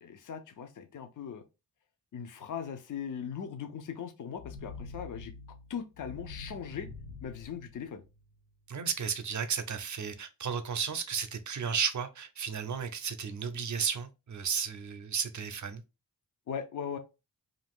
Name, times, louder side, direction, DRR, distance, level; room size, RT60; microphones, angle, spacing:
voice 1, 0.0-1.4 2.1-5.3 5.7-6.9 7.2-8.0 16.5-17.0, left 7 dB, 45° left, 0.6 m, -39 dB
sound 1, 4.3-8.4, left 3 dB, 90° left, 0.7 m, -46 dB
voice 2, 8.7-15.8, right 7 dB, 45° right, 0.6 m, -33 dB
2.6 x 2.4 x 3.5 m
cardioid pair, 55°, 42 cm